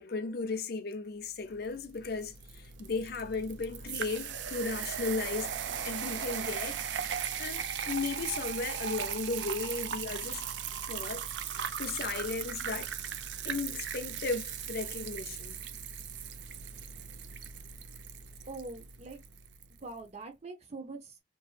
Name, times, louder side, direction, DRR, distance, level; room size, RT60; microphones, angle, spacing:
voice 1, 0.0-5.5 5.8-6.8 7.4-10.4 10.9-11.3 11.8-12.9 13.4-15.6, left 4 dB, 60° left, 0.5 m, -35 dB
sound 1, 1.7-19.7, right 8 dB, 80° right, 0.4 m, -38 dB
voice 2, 18.5-19.2 19.8-21.2, right 3 dB, 40° right, 0.6 m, -43 dB
3.1 x 2.5 x 2.3 m
head